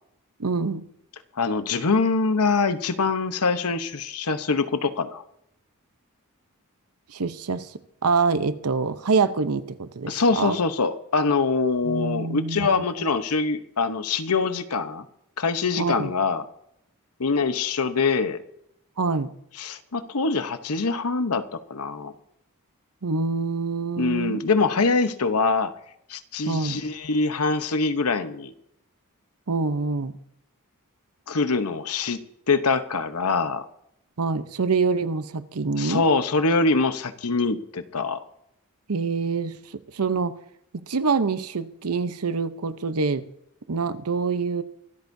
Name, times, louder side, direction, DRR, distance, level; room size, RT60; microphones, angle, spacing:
voice 1, 0.4-0.8 7.1-10.6 11.8-12.8 15.8-16.1 19.0-19.3 23.0-24.4 26.5-26.8 29.5-30.1 34.2-36.0 38.9-40.4 40.7-43.2 43.7-44.6, right 4 dB, 75° right, 12 dB, 0.8 m, -26 dB
voice 2, 1.4-5.2 10.1-15.0 15.4-16.4 17.2-18.4 19.6-21.4 21.7-22.1 24.0-25.7 26.1-28.5 31.3-32.2 32.5-33.6 35.8-38.2, left 4 dB, 75° left, 10 dB, 0.9 m, -24 dB
24.5 x 13.0 x 2.7 m, 0.77 s
head